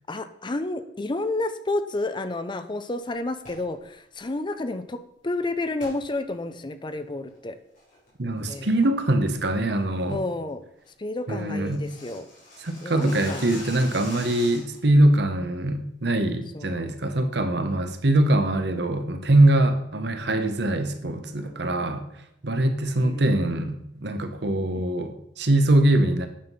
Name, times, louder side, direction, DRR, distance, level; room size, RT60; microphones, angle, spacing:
voice 1, 0.1-7.6 8.5-8.7 10.1-10.6 11.0-12.3 12.8-13.5 16.5-16.8 21.4-21.7 23.0-23.4 24.6-24.8, left 2 dB, 25° left, 10 dB, 0.5 m, -31 dB
sound 1, 3.4-3.7 5.8-6.0 6.5-6.6 7.1-7.4 7.7-8.1 8.4-8.7 9.0-9.1 9.5-9.8 10.1-10.2 10.6-10.7 10.8-10.9 11.2-14.9, left 2 dB, 50° left, 4.0 m, -42 dB
voice 2, 8.2-10.2 11.3-11.9 12.6-22.0 22.4-26.3, right 1 dB, 65° right, 7 dB, 1.0 m, -23 dB
8.8 x 5.8 x 5.4 m, 0.77 s
head